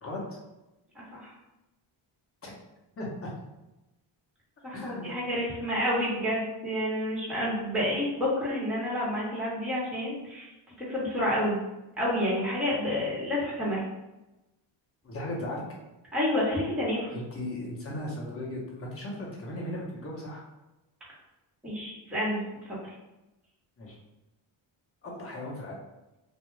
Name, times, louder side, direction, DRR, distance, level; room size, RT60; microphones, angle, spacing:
voice 1, 0.0-0.4 2.4-2.5 3.0-3.3 4.7-5.1 15.0-15.6 17.1-20.4 23.8-24.0 25.0-25.8, left 1 dB, 25° left, -3 dB, 0.9 m, -37 dB
voice 2, 0.9-1.3 4.6-10.5 10.9-11.6 12.0-13.8 16.1-17.1 21.6-22.9, left 1 dB, ahead, -7 dB, 1.0 m, -29 dB
2.3 x 2.1 x 3.1 m, 0.99 s
cardioid pair, 80°, 50 cm